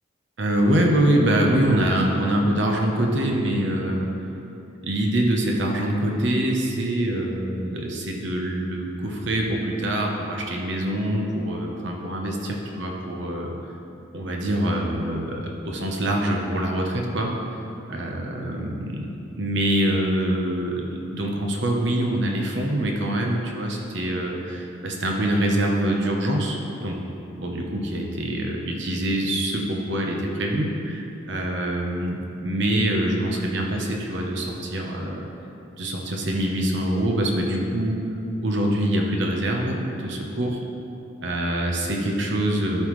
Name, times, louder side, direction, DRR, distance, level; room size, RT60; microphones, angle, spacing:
voice 1, 0.4-4.1 4.8-13.5 14.1-17.3 17.9-19.1 19.4-27.0 27.4-35.3 35.8-38.0 38.4-40.6 41.2-42.9, right 1 dB, 60° right, 0 dB, 0.9 m, -24 dB
13.0 x 5.5 x 3.2 m, 2.8 s
head